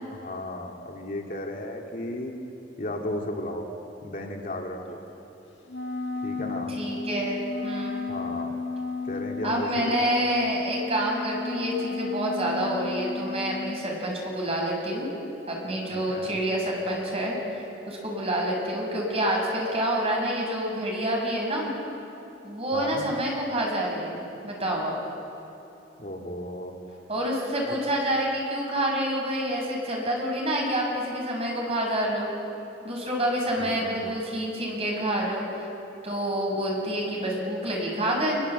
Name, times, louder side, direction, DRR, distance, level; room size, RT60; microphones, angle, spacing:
voice 1, 0.1-2.3 2.8-3.7 4.0-5.0 6.2-6.7 8.1-8.6 9.0-10.2 15.9-16.4 22.7-23.0 26.0-26.7 27.7-27.8 33.6-34.1, left 1 dB, 50° left, 1 dB, 2.5 m, -35 dB
Wind instrument woodwind instrument, 5.7-13.8, left 4 dB, 85° left, 2.2 m, -33 dB
voice 2, 6.7-8.0 9.4-15.1 15.5-21.7 22.4-25.0 27.1-32.3 32.8-35.4 36.0-38.4, right 1 dB, 35° right, -1 dB, 6.7 m, -28 dB
26.5 x 22.0 x 8.3 m, 3.0 s
head